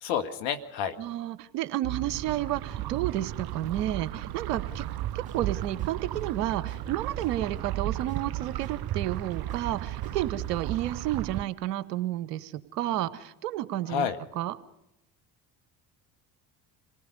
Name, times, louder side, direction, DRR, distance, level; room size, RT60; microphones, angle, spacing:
voice 1, 0.0-1.0 13.9-14.2, left 8 dB, 65° left, 7 dB, 2.0 m, -29 dB
voice 2, 1.0-4.9 5.1-14.1 14.3-14.6, right 13 dB, 80° right, 14 dB, 1.2 m, -31 dB
sound 1, 1.8-10.4, right 14 dB, 65° right, 1.6 m, -41 dB
sound 2, 1.9-11.4, right 13 dB, 50° right, 0.9 m, -35 dB
sound 3, 4.7-4.8 5.3-6.2 6.7-7.8 8.1-10.5, right 1 dB, 15° right, 3.4 m, -49 dB
27.0 x 18.0 x 5.3 m, 0.87 s
hypercardioid pair, 60°, 47 cm